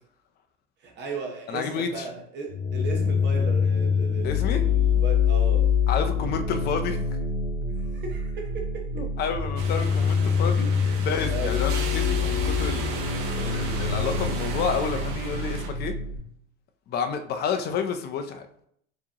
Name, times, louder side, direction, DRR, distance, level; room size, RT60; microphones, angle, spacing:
voice 1, 0.8-5.7 7.8-9.0 10.8-11.7, right 3 dB, 35° right, 0.8 m, -36 dB
voice 2, 1.5-2.1 4.2-4.6 5.9-7.0 8.9-12.9 13.3-15.9 16.9-18.5, left 6 dB, 30° left, 0.5 m, -30 dB
sound 1, 2.5-16.2, left 6 dB, 80° left, 0.8 m, -25 dB
sound 2, 9.6-15.7, right 2 dB, 60° right, 1.0 m, -34 dB
4.6 x 3.0 x 2.8 m
supercardioid pair, 145°, 31 cm